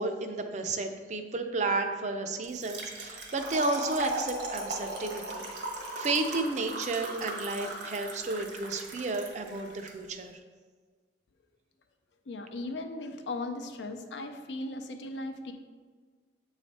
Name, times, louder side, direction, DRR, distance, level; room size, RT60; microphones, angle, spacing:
voice 1, 0.0-5.7 5.9-10.4, right 3 dB, 40° right, 6 dB, 0.5 m, -32 dB
Trickle dribble / Fill (with liquid), 2.4-9.9, right 2 dB, 75° right, 1.1 m, -38 dB
voice 2, 12.3-15.5, left 2 dB, 85° left, 6 dB, 0.5 m, -37 dB
7.4 x 3.2 x 4.2 m, 1.5 s
head